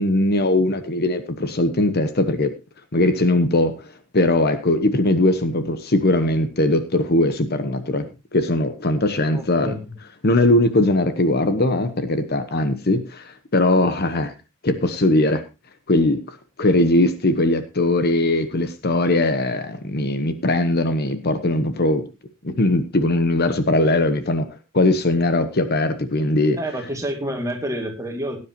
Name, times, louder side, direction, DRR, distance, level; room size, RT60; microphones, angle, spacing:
voice 1, 0.0-2.5 2.9-3.7 4.1-8.0 8.3-9.7 10.2-14.3 14.6-15.4 15.9-22.0 22.4-24.5 24.7-26.6, left 2 dB, 50° left, 10 dB, 1.1 m, -20 dB
voice 2, 9.3-9.9 26.6-28.4, right 1 dB, 15° right, 3 dB, 2.3 m, -28 dB
18.0 x 9.8 x 2.9 m, 0.26 s
head